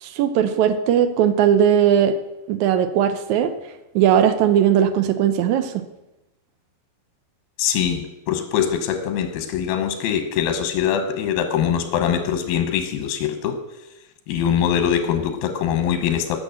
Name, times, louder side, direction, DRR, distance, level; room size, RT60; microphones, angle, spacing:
voice 1, 0.0-2.1 2.5-3.5 3.9-5.7, right 9 dB, 75° right, 9 dB, 1.8 m, -18 dB
voice 2, 7.6-13.6 14.3-16.4, left 8 dB, 85° left, 7 dB, 3.0 m, -23 dB
11.5 x 6.4 x 7.9 m, 0.93 s
omnidirectional pair, 4.2 m